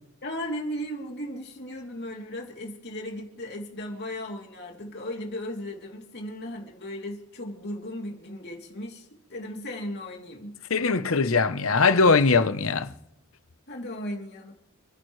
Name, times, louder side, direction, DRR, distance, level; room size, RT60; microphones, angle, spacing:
voice 1, 0.2-10.5 13.7-14.5, left 1 dB, 50° left, 3.1 m, -36 dB
voice 2, 10.7-12.9, left 4 dB, 70° left, 0.9 m, -21 dB
29.0 x 11.0 x 3.3 m
head